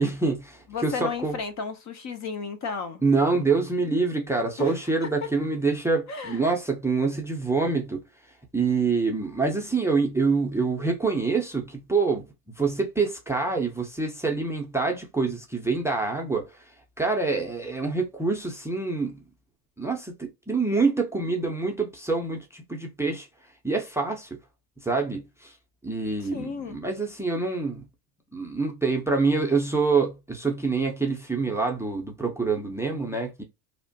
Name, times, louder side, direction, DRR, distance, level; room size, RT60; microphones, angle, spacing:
voice 1, 0.0-1.4 3.0-8.0 8.5-12.2 12.6-16.6 17.0-19.2 19.8-23.3 23.6-24.3 24.8-25.5 25.8-27.8 28.3-33.4, right 4 dB, 5° right, 0.6 m, -26 dB
voice 2, 0.7-3.0 4.6-4.7 5.0-5.3 6.1-6.5 26.2-26.8, left 5 dB, 35° left, 0.7 m, -33 dB
3.0 x 2.1 x 2.7 m
hypercardioid pair, 90°, 46 cm